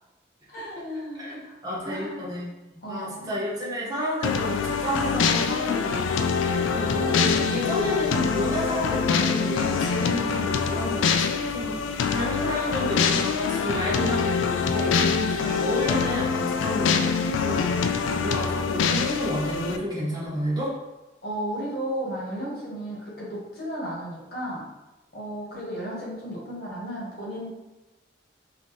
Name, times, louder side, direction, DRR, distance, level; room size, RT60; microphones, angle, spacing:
voice 1, 0.5-1.5 1.8-2.3 2.8-3.3 10.0-10.3 21.2-24.7 25.1-27.5, equal, 55° left, -5 dB, 1.4 m, -34 dB
voice 2, 1.1-6.0 6.5-17.7 18.1-20.7, equal, 20° right, -6 dB, 1.0 m, -31 dB
sound 1, 4.2-19.8, left 5 dB, 90° left, 0.3 m, -25 dB
4.1 x 2.8 x 3.1 m, 1.0 s
head